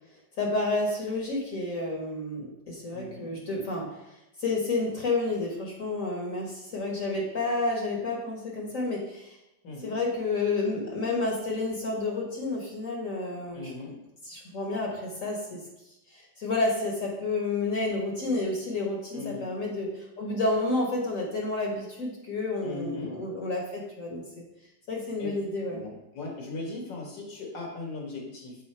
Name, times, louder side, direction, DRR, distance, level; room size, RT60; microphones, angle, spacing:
voice 1, 0.4-9.4 9.8-13.7 14.2-15.6 16.1-24.4 24.9-25.8, left 2 dB, 50° left, -1 dB, 1.4 m, -30 dB
voice 2, 2.9-3.3 9.6-10.0 13.5-14.0 19.1-19.5 22.6-23.2 25.2-25.3 25.7-28.6, left 3 dB, 80° left, 0 dB, 2.2 m, -38 dB
7.3 x 4.0 x 4.4 m, 0.90 s
omnidirectional pair, 1.9 m